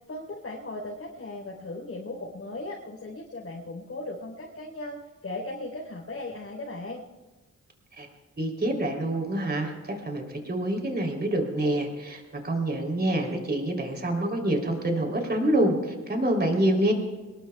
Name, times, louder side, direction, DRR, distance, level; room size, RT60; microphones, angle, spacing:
voice 1, 0.1-7.0, left 2 dB, 45° left, -4 dB, 4.1 m, -37 dB
voice 2, 8.4-16.9, right 1 dB, 30° right, 2 dB, 3.6 m, -26 dB
25.0 x 21.0 x 2.4 m, 1.2 s
wide cardioid pair, 120°, 32 cm